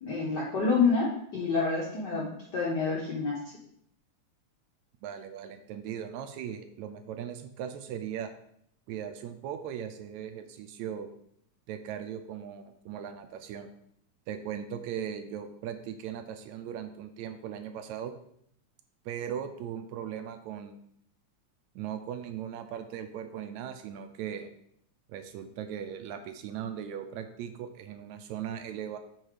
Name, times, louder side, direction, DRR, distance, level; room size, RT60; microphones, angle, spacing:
voice 1, 0.0-2.3 2.5-3.4, left 4 dB, 75° left, -4 dB, 1.0 m, -27 dB
voice 2, 5.0-8.3 8.9-11.1 11.7-13.7 14.3-18.1 19.1-20.8 21.8-24.5 25.1-29.0, right 9 dB, 80° right, 7 dB, 1.8 m, -38 dB
5.5 x 4.5 x 4.8 m, 0.69 s
omnidirectional pair, 3.4 m